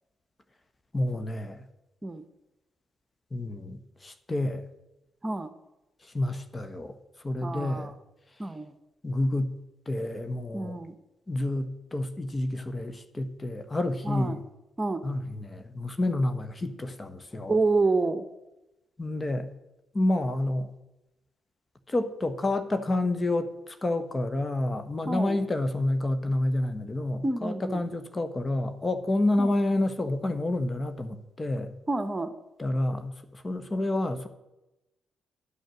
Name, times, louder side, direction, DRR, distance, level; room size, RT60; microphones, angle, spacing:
voice 1, 0.9-1.7 3.3-4.6 6.0-7.0 7.2-7.9 9.0-9.5 9.9-10.8 11.3-14.4 15.0-17.6 19.0-19.5 19.9-20.7 21.9-31.7 32.6-34.3, left 1 dB, 30° left, 10 dB, 1.4 m, -29 dB
voice 2, 7.4-7.9 8.4-8.8 10.5-10.9 14.0-14.4 14.8-15.0 17.5-18.2 25.1-25.4 27.2-27.8 29.4-29.5 31.9-32.3, right 3 dB, 25° right, 10 dB, 1.3 m, -28 dB
11.5 x 9.3 x 6.4 m, 0.95 s
hypercardioid pair, 40°, 0 cm